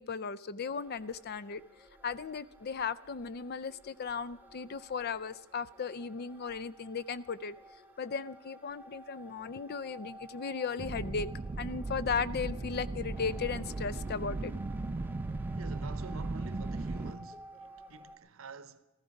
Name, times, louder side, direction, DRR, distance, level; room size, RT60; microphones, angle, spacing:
voice 1, 0.0-1.6 2.0-7.5 8.0-11.3 11.6-14.5, left 5 dB, 50° left, 0.5 m, -36 dB
sound 1, 0.6-18.1, left 1 dB, 15° left, 2.2 m, -64 dB
sound 2, 0.7-18.2, right 2 dB, 10° right, 0.8 m, -54 dB
sound 3, 10.8-17.1, right 2 dB, 30° right, 0.4 m, -37 dB
voice 2, 15.5-18.8, right 4 dB, 80° right, 0.8 m, -46 dB
15.5 x 14.0 x 5.2 m
head